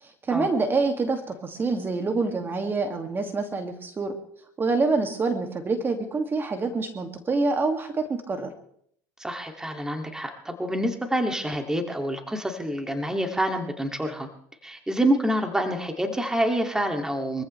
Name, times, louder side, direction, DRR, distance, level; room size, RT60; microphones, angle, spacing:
voice 1, 0.0-4.1 4.6-8.5, right 3 dB, 25° right, 5 dB, 2.3 m, -26 dB
voice 2, 9.2-14.3 14.6-17.4, right 1 dB, 5° right, 4 dB, 2.5 m, -27 dB
24.0 x 15.0 x 3.3 m, 0.66 s
supercardioid pair, 90°, 8 cm